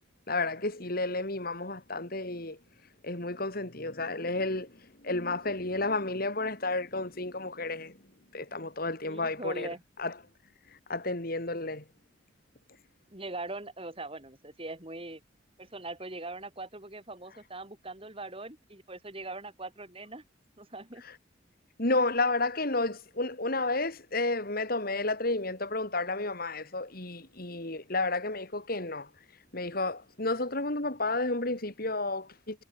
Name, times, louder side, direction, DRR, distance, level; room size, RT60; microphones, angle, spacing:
voice 1, 0.3-2.6 3.0-8.0 8.3-9.7 10.0-10.1 10.9-11.8 21.8-29.1 29.5-32.6, left 2 dB, 50° left, 3.8 m, -31 dB
voice 2, 9.0-9.8 13.1-15.2 15.6-20.2 20.6-21.0, right 2 dB, 30° right, 4.3 m, -41 dB
head